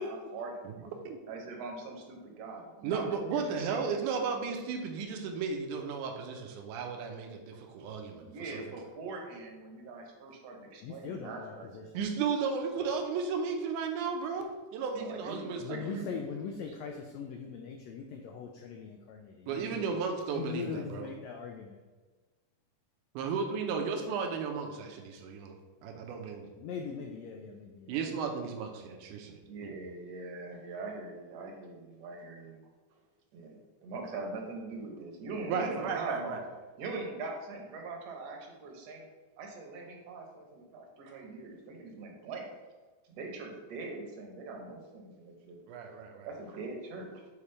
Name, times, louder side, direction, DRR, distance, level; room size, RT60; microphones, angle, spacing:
voice 1, 0.0-0.9 1.3-4.0 8.2-11.9 14.9-16.9 29.5-32.6 33.3-36.4 36.8-39.0 39.4-42.5 43.1-45.6 46.2-47.1, right 3 dB, 65° right, 1 dB, 1.7 m, -42 dB
voice 2, 2.8-8.8 11.9-15.9 19.5-21.1 23.1-25.6 25.8-26.5 27.9-29.8 35.5-36.4 45.7-46.3, right 5 dB, 85° right, 3 dB, 2.2 m, -34 dB
voice 3, 10.8-11.8 15.6-19.9 20.3-21.8 26.6-27.9, left 6 dB, 90° left, 3 dB, 1.5 m, -40 dB
7.1 x 4.8 x 3.3 m, 1.3 s
omnidirectional pair, 3.7 m